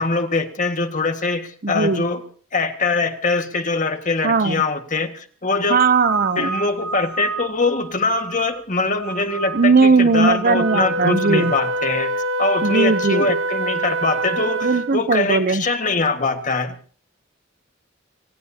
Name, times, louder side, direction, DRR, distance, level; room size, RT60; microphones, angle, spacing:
voice 1, 0.0-2.2 2.5-5.8 6.4-16.7, left 3 dB, 40° left, 7 dB, 1.8 m, -23 dB
voice 2, 1.6-2.0 4.2-4.6 5.7-6.6 9.5-11.5 12.6-13.3 14.6-15.6, right 4 dB, 45° right, 15 dB, 0.7 m, -18 dB
sound 1, 5.7-8.6 8.9-9.7 10.1-11.6, right 5 dB, 15° left, 6.6 m, -32 dB
Wind instrument woodwind instrument, 10.4-15.1, right 2 dB, 75° right, 1.1 m, -25 dB
27.0 x 17.0 x 2.9 m, 0.43 s
head